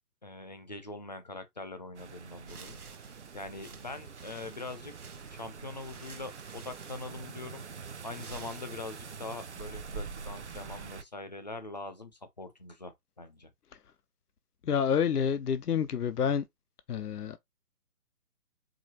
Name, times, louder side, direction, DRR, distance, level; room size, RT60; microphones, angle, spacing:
voice 1, 0.2-4.9 5.3-7.6 8.0-13.5, left 2 dB, 30° left, 0.6 m, -43 dB
sound 1, 1.9-11.0, right 5 dB, 50° right, 0.5 m, -45 dB
sound 2, 2.4-9.3, right 5 dB, 70° right, 0.9 m, -53 dB
voice 2, 14.6-16.4 16.9-17.4, left 7 dB, 80° left, 0.6 m, -28 dB
4.8 x 3.1 x 3.0 m
figure-of-eight pair, 145°, 46 cm